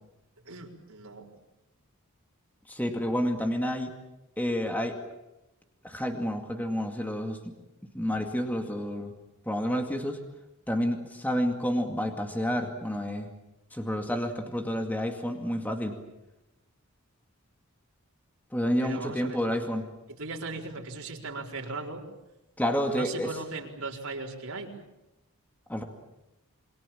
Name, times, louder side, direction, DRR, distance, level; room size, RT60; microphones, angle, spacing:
voice 1, 0.4-1.3 18.8-19.4 20.1-22.1 22.9-24.8, right 3 dB, 85° right, 0 dB, 4.5 m, -38 dB
voice 2, 2.7-3.9 4.4-4.9 5.8-7.5 7.9-9.1 9.5-10.2 10.7-13.3 13.7-15.9 18.5-19.9 22.6-23.4 25.7-25.8, equal, 10° left, 4 dB, 2.2 m, -29 dB
27.5 x 24.0 x 7.4 m, 0.96 s
head